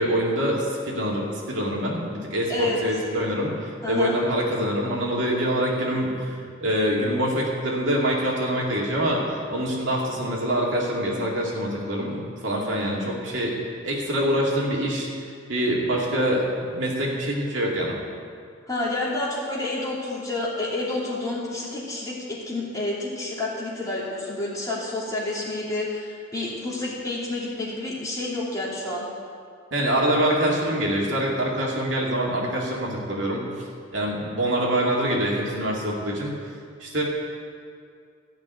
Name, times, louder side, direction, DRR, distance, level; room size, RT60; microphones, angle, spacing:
voice 1, 0.0-6.3 6.6-13.6 13.8-15.1 15.5-17.9 29.7-33.5 33.9-36.3 36.8-37.0, equal, 65° right, -3 dB, 2.5 m, -25 dB
voice 2, 2.5-2.8 3.8-4.1 18.7-29.1, left 2 dB, 15° left, -6 dB, 3.0 m, -29 dB
14.5 x 6.1 x 9.3 m, 2.2 s
head